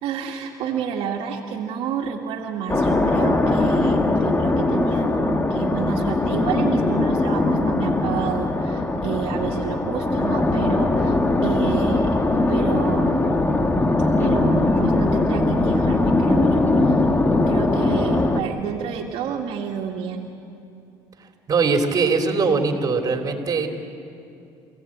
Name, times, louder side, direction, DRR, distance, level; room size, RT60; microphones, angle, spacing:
voice 1, 0.0-11.2 11.4-13.2 14.2-17.0 17.5-20.3, right 7 dB, 70° right, -1 dB, 2.1 m, -29 dB
sound 1, 2.7-18.4, left 2 dB, 20° left, 1.5 m, -20 dB
voice 2, 21.5-23.7, right 4 dB, 35° right, 3 dB, 3.2 m, -21 dB
26.5 x 17.5 x 8.8 m, 2.7 s
cardioid pair, 105°, 10 cm